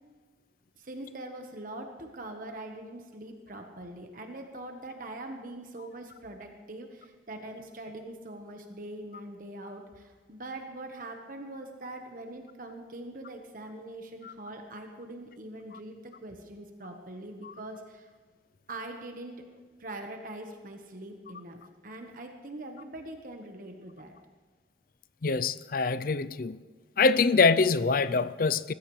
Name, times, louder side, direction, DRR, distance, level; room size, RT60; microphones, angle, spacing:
voice 1, 0.8-18.1 18.7-19.5 19.8-24.1, right 1 dB, 50° right, 1.3 m, -42 dB
voice 2, 25.2-26.6 27.0-28.7, left 4 dB, 50° left, 0.5 m, -24 dB
20.5 x 15.0 x 3.2 m
head